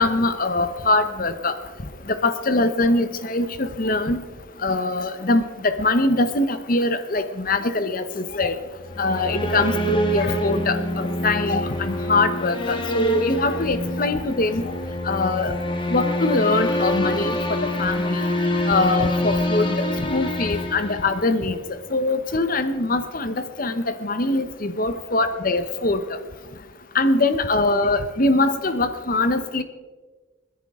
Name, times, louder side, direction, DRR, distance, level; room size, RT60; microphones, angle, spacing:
voice 1, 0.0-1.5 2.1-4.2 4.6-8.6 9.0-14.6 15.0-15.5 15.9-18.2 18.7-19.8 20.1-21.6 21.9-26.0 26.9-29.6, left 2 dB, 45° left, 10 dB, 0.9 m, -22 dB
sound 1, 8.8-21.6, left 1 dB, 25° left, 1.5 m, -26 dB
29.0 x 10.5 x 3.7 m, 1.3 s
head